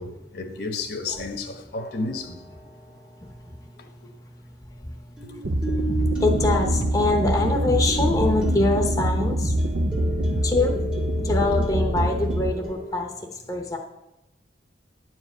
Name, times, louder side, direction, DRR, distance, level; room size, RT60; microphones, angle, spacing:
voice 1, 0.0-2.4 5.2-5.5 10.2-10.3, left 3 dB, 55° left, 1.3 m, -32 dB
sound 1, 1.8-2.6 5.2-13.0, right 1 dB, 5° right, 1.0 m, -34 dB
voice 2, 2.7-9.6 10.4-13.8, left 2 dB, 20° left, 0.9 m, -26 dB
sound 2, 5.4-12.5, right 1 dB, 60° right, 0.7 m, -24 dB
10.5 x 4.9 x 8.2 m
head